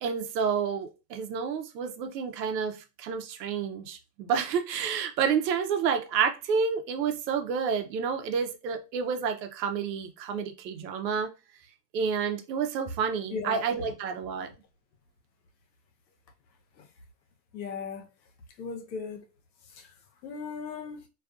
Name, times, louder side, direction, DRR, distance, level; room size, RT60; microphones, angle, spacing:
voice 1, 0.0-11.3 11.9-14.5, right 6 dB, 80° right, 0.7 m, -29 dB
voice 2, 13.3-13.9 17.5-18.1 18.6-19.2 19.8-19.9 20.2-21.0, left 5 dB, 85° left, 0.9 m, -37 dB
2.4 x 2.4 x 2.3 m
hypercardioid pair, 120°, 50 cm